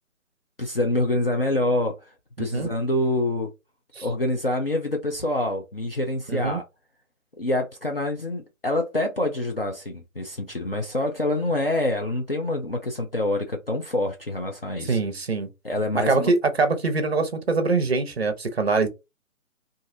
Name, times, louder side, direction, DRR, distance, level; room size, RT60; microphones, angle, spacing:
voice 1, 0.6-2.1 2.4-3.5 4.0-6.6 7.4-15.0 15.6-16.3, left 1 dB, 40° left, 0.5 m, -26 dB
voice 2, 2.4-2.7 4.0-4.1 6.3-6.6 14.8-15.5 16.0-18.9, right 3 dB, 45° right, 0.7 m, -23 dB
3.8 x 2.6 x 2.6 m
figure-of-eight pair, 150°, 43 cm